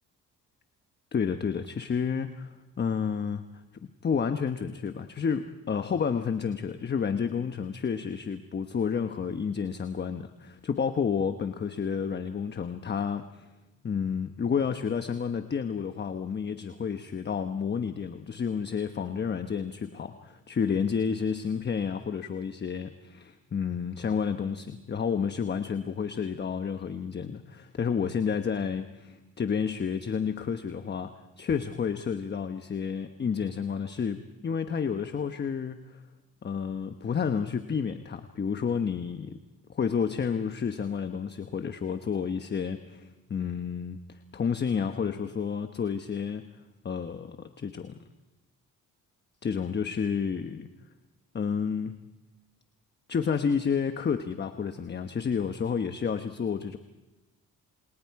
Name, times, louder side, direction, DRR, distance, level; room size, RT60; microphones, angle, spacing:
voice 1, 1.1-3.4 4.0-13.5 13.8-31.1 31.4-35.8 36.4-39.4 39.7-46.4 46.8-48.0 49.4-50.7 51.3-52.0 53.1-56.8, left 6 dB, 35° left, 8 dB, 1.1 m, -30 dB
28.5 x 28.5 x 4.8 m, 1.1 s
cardioid pair, 105°, 32 cm